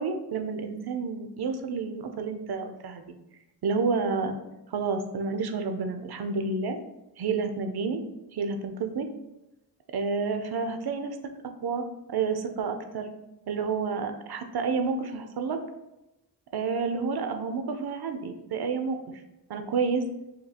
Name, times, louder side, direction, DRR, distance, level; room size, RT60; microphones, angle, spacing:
voice 1, 0.0-3.1 3.6-4.4 4.7-6.8 7.2-8.0 8.3-9.1 9.9-11.2 11.6-13.1 13.5-15.6 16.5-19.0 19.5-20.0, right 4 dB, 75° right, 7 dB, 0.5 m, -29 dB
5.1 x 2.3 x 2.8 m, 0.95 s
wide cardioid pair, 70°, 39 cm